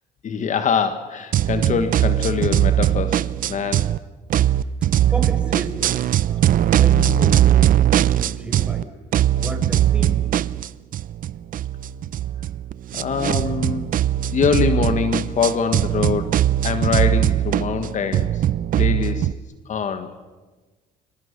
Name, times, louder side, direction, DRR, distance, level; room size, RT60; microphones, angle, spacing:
voice 1, 0.2-3.9 12.9-14.0 14.3-18.4 18.8-19.3 19.6-20.1, left 6 dB, 45° left, 9 dB, 1.6 m, -24 dB
sound 1, 1.3-4.0 4.3-8.8 9.1-19.3, right 12 dB, 55° right, 0.7 m, -20 dB
voice 2, 5.1-8.9 9.4-10.2, right 1 dB, 5° right, 4 dB, 5.5 m, -32 dB
29.5 x 24.5 x 6.7 m, 1.3 s
cardioid pair, 110°, 17 cm